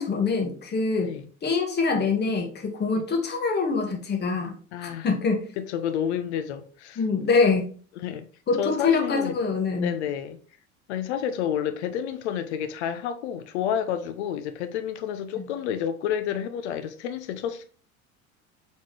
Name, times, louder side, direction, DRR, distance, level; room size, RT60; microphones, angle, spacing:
voice 1, 0.0-1.1 1.4-4.6 4.8-5.4 7.0-7.7 8.5-9.9 15.3-15.5, left 4 dB, 25° left, 1.1 m, -25 dB
voice 2, 4.7-5.1 5.6-7.0 8.0-8.2 8.6-9.4 9.8-10.4 10.9-17.6, left 9 dB, 55° left, 0.5 m, -30 dB
4.1 x 3.6 x 3.2 m
figure-of-eight pair, 70°, 42 cm